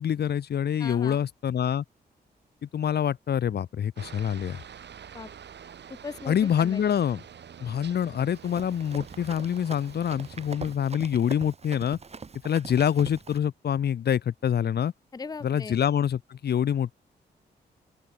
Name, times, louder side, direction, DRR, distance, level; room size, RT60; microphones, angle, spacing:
voice 1, 0.0-1.8 2.6-4.6 6.3-7.2 7.6-12.0 12.4-14.9 15.4-17.0, left 9 dB, 65° left, 0.8 m, -26 dB
voice 2, 0.8-1.2 5.1-5.3 5.9-6.8 15.1-15.8, left 4 dB, 20° left, 0.6 m, -38 dB
Aircraft, 4.0-10.8, right 8 dB, 70° right, 6.1 m, -47 dB
Run, 8.3-13.4, right 5 dB, 35° right, 1.4 m, -43 dB
open air
cardioid pair, 90°, 18 cm